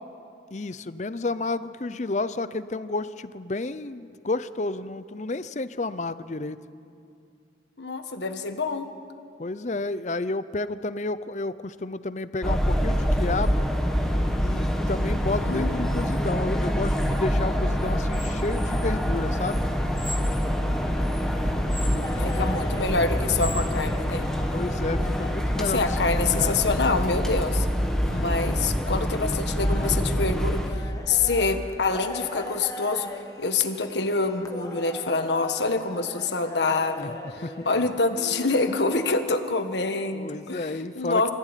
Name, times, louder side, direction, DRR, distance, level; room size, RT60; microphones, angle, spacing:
voice 1, 0.5-6.6 9.4-13.7 14.4-19.6 21.9-22.5 24.5-26.7 37.0-37.1 37.4-37.7 40.1-41.3, left 2 dB, 40° left, 14 dB, 0.6 m, -31 dB
voice 2, 7.8-8.9 15.4-16.1 22.2-24.3 25.6-27.7 28.1-33.1 33.4-41.3, left 3 dB, 75° left, 7 dB, 1.5 m, -26 dB
sound 1, 12.4-30.7, equal, 5° left, 1.5 m, -25 dB
sound 2, 22.0-39.1, left 2 dB, 20° left, 1.3 m, -40 dB
25.5 x 15.0 x 9.1 m, 2.5 s
head